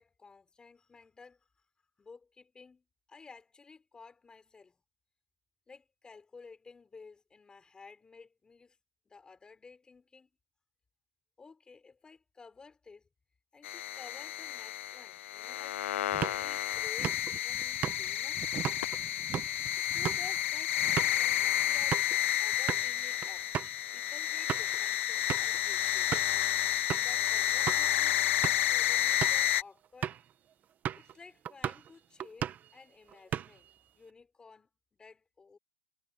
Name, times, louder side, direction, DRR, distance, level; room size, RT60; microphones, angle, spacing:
voice 1, 0.0-1.4 2.0-4.8 5.7-8.8 9.1-10.3 11.4-13.1 13.5-15.8 16.2-18.5 19.9-22.0 22.4-23.5 23.9-26.1 26.8-28.2 28.7-30.2 30.9-34.7 35.0-35.6, left 4 dB, 10° left, 4.3 m, -54 dB
sound 1, 13.6-29.6, left 12 dB, 85° left, 0.4 m, -30 dB
sound 2, 16.1-22.2 22.5-22.9 23.2-23.3 23.5-23.8 24.2-24.8 25.3-25.6 26.1-26.4 26.9-27.2 27.7-27.8 28.3-28.7 29.1-29.5 30.0-30.3 30.9-31.1 31.5-31.9 32.2-32.7 33.1-33.7, right 9 dB, 25° right, 1.2 m, -37 dB
supercardioid pair, 140°, 7 cm